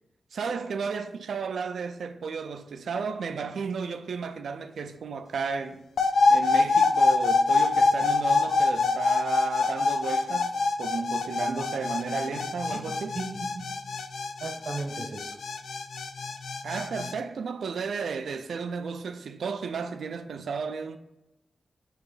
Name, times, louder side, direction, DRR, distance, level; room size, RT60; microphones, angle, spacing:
voice 1, 0.3-5.8 6.3-13.2 16.6-21.0, right 5 dB, 90° right, 0.3 m, -33 dB
sound 1, 6.0-17.1, left 3 dB, 85° left, 0.3 m, -25 dB
voice 2, 12.7-13.7 14.4-15.4, right 3 dB, 60° right, 0.8 m, -36 dB
4.6 x 2.9 x 3.9 m
wide cardioid pair, 105°, 0 cm